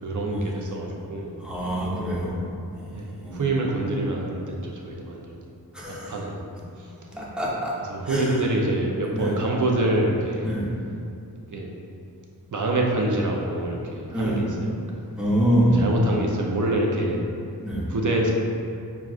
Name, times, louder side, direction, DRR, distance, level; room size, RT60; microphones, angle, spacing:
voice 1, 0.0-1.3 2.9-5.4 5.9-6.4 7.9-10.5 11.5-11.7 12.5-15.0 15.8-17.2 17.9-18.3, right 2 dB, 50° right, -1 dB, 0.6 m, -26 dB
voice 2, 1.4-2.4 2.7-3.0 3.2-3.5 5.7-6.1 7.1-7.7 8.0-8.4 9.1-9.3 10.4-10.7 14.1-14.4 15.2-15.8 17.6-17.9, right 1 dB, ahead, -6 dB, 0.8 m, -25 dB
6.1 x 2.4 x 2.4 m, 2.6 s
wide cardioid pair, 75°, 38 cm